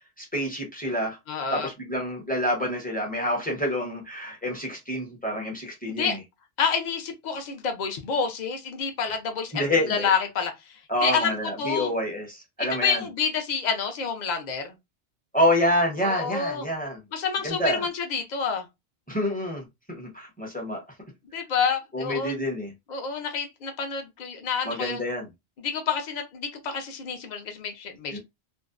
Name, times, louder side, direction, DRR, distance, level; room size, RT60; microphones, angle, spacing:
voice 1, 0.2-1.2 1.5-6.2 9.5-10.1 10.9-13.0 15.3-17.0 17.4-17.9 19.1-20.8 21.9-22.7 24.6-25.3 28.1-28.2, left 1 dB, 10° left, 0.6 m, -27 dB
voice 2, 1.3-1.7 5.9-6.2 6.6-10.5 11.0-11.3 11.6-11.9 12.8-14.7 16.0-16.7 17.1-18.7 21.3-22.3 22.9-25.0 25.6-28.2, left 6 dB, 50° left, 0.6 m, -28 dB
2.6 x 2.0 x 2.4 m
omnidirectional pair, 1.1 m